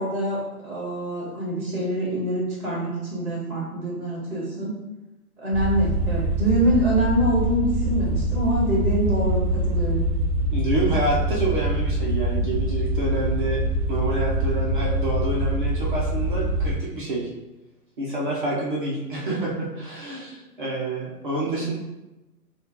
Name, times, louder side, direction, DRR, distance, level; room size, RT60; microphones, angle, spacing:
voice 1, 0.0-4.7 5.4-10.0 12.4-12.5, right 1 dB, 5° right, -14 dB, 1.1 m, -25 dB
sound 1, 5.5-16.7, right 1 dB, 80° right, 0.7 m, -24 dB
voice 2, 10.5-13.6 13.9-17.3 18.0-21.7, right 2 dB, 35° right, -6 dB, 0.7 m, -27 dB
5.3 x 2.4 x 2.8 m, 1.0 s
hypercardioid pair, 160°, 47 cm